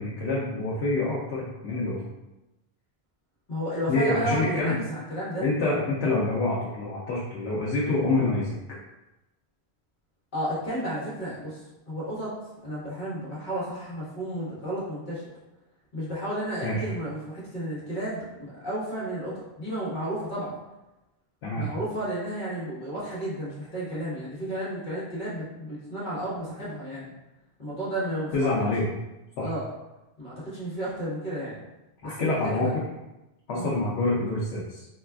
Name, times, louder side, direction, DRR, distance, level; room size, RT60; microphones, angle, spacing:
voice 1, 0.0-2.0 3.9-4.8 5.4-8.6 16.6-16.9 21.4-21.7 28.3-28.8 29.4-29.5 32.0-32.8 33.5-34.9, left 2 dB, 85° left, -6 dB, 0.9 m, -26 dB
voice 2, 3.5-5.5 10.3-12.3 12.6-15.2 15.9-20.6 21.5-27.1 27.6-28.5 29.4-29.7 30.2-31.6 32.0-32.7 33.5-33.7, right 1 dB, 50° left, -8 dB, 1.2 m, -32 dB
4.1 x 2.3 x 2.2 m, 0.99 s
omnidirectional pair, 1.1 m